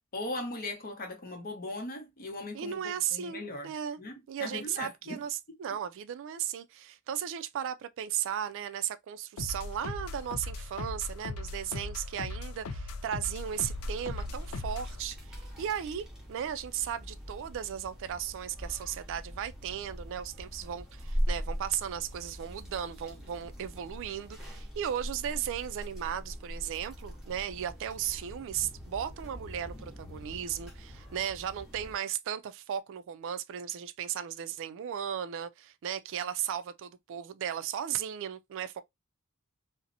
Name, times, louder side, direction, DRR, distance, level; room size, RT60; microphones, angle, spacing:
voice 1, 0.0-3.7 4.0-5.2, left 2 dB, 45° left, 0.8 m, -39 dB
voice 2, 2.5-4.0 4.3-38.8, right 9 dB, 60° right, 0.3 m, -36 dB
sound 1, 9.4-15.0, left 3 dB, 75° left, 0.4 m, -39 dB
sound 2, 13.4-31.9, equal, 5° right, 0.8 m, -41 dB
2.7 x 2.0 x 2.5 m
head